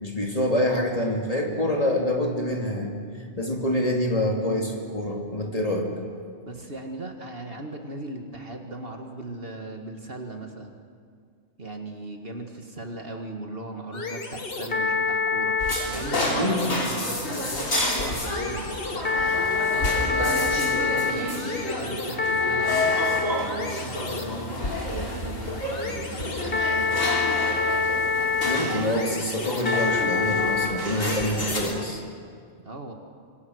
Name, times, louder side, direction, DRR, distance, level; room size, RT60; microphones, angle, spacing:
voice 1, 0.0-3.0 3.4-5.9 16.3-16.6 28.4-32.0, left 1 dB, 30° left, 0 dB, 2.9 m, -26 dB
voice 2, 6.4-10.8 11.6-15.6 15.9-19.3 19.7-23.0 23.3-27.5 32.6-32.9, right 2 dB, 50° right, 3 dB, 2.2 m, -38 dB
sound 1, 13.9-31.9, left 4 dB, 45° left, 1.8 m, -28 dB
sound 2, 15.6-31.6, left 1 dB, 80° left, 4.3 m, -30 dB
sound 3, 19.1-30.2, equal, 25° right, 3.9 m, -43 dB
26.0 x 25.5 x 6.4 m, 2.2 s
omnidirectional pair, 1.3 m